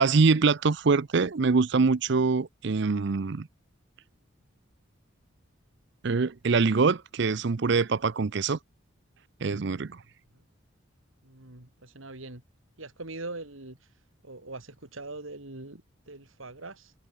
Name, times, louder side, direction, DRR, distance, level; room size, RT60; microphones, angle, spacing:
voice 1, 0.0-3.5 6.0-8.6 9.4-10.0, right 4 dB, 55° right, 0.6 m, -24 dB
voice 2, 11.2-12.4 12.8-13.9 14.2-16.9, right 2 dB, 75° right, 3.0 m, -42 dB
head